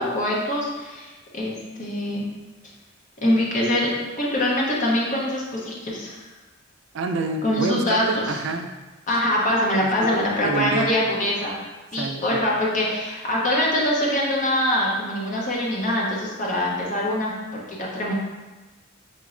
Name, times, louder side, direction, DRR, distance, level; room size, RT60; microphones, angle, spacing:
voice 1, 0.0-1.5 1.8-2.2 3.2-6.3 7.4-8.2 9.1-11.6 11.9-18.1, left 1 dB, 40° left, -4 dB, 0.8 m, -24 dB
voice 2, 6.9-8.8 10.0-10.9 11.9-12.5, right 3 dB, 65° right, 5 dB, 0.4 m, -28 dB
4.3 x 3.0 x 2.5 m, 1.2 s
head